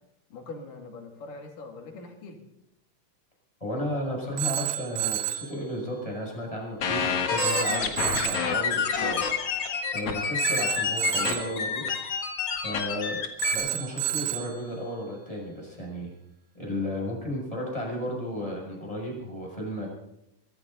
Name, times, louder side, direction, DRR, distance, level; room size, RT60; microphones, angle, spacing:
voice 1, 0.3-2.4, left 3 dB, 80° left, 3 dB, 4.2 m, -42 dB
voice 2, 3.6-9.2 9.9-11.8 12.6-13.2 13.5-16.1 16.5-19.9, left 1 dB, 10° left, -2 dB, 6.9 m, -33 dB
Telephone, 4.4-5.5 7.4-8.5 10.4-11.6 13.4-14.6, right 13 dB, 75° right, 2.7 m, -30 dB
sound 1, 6.8-13.5, left 6 dB, 50° left, 2.4 m, -28 dB
23.5 x 15.0 x 4.0 m, 0.82 s
omnidirectional pair, 3.7 m